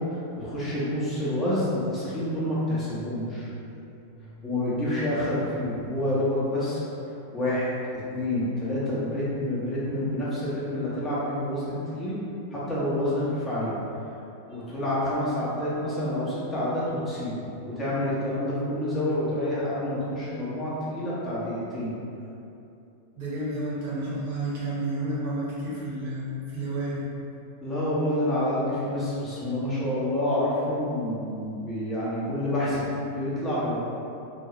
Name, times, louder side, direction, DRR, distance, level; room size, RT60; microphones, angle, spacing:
voice 1, 0.0-3.5 4.2-6.8 7.3-7.7 8.1-11.6 11.9-12.2 12.5-13.7 14.5-22.0 27.6-33.8, left 1 dB, 15° left, -10 dB, 1.0 m, -28 dB
voice 2, 23.2-27.0, right 1 dB, 50° right, -9 dB, 1.0 m, -31 dB
2.8 x 2.3 x 2.9 m, 2.8 s
figure-of-eight pair, 90°, 0 cm